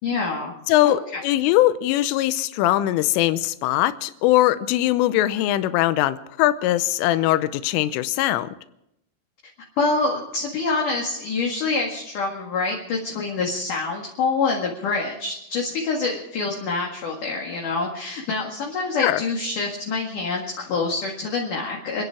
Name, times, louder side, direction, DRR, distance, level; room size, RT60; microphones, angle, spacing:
voice 1, 0.0-0.5 0.8-1.2 9.8-22.0, left 4 dB, 55° left, -1 dB, 2.7 m, -26 dB
voice 2, 0.7-8.5 19.0-19.2, left 14 dB, 85° left, 13 dB, 3.3 m, -21 dB
28.0 x 10.5 x 4.8 m, 0.81 s
omnidirectional pair, 5.8 m